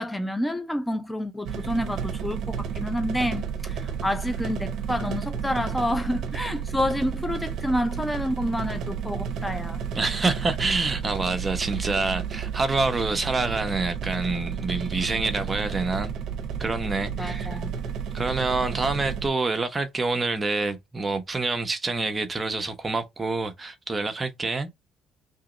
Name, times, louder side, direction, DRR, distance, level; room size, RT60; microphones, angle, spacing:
voice 1, 0.0-9.8 17.1-17.7, equal, 5° left, 0.4 m, -29 dB
sound 1, 1.4-19.3, right 7 dB, 65° right, 0.7 m, -32 dB
voice 2, 9.9-16.1 16.6-17.6 18.1-24.7, right 3 dB, 25° right, 0.8 m, -27 dB
2.9 x 2.8 x 3.7 m
cardioid pair, 105°, 0 cm